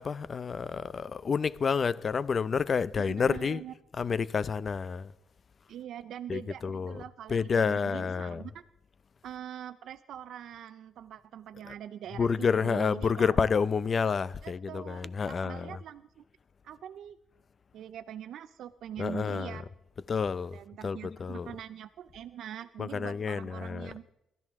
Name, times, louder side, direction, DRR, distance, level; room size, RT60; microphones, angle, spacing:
voice 1, 0.0-3.6 3.9-5.1 6.3-7.0 7.3-8.4 11.7-11.8 12.1-15.8 19.0-19.6 20.1-20.6 20.8-21.5 22.8-23.9, left 5 dB, 40° left, 0.6 m, -29 dB
voice 2, 3.0-3.7 5.7-8.6 9.2-12.3 12.6-13.4 14.4-16.2 16.6-17.2 17.7-19.7 20.5-24.1, right 10 dB, 75° right, 0.5 m, -43 dB
22.5 x 13.0 x 3.7 m
cardioid pair, 90°, 0 cm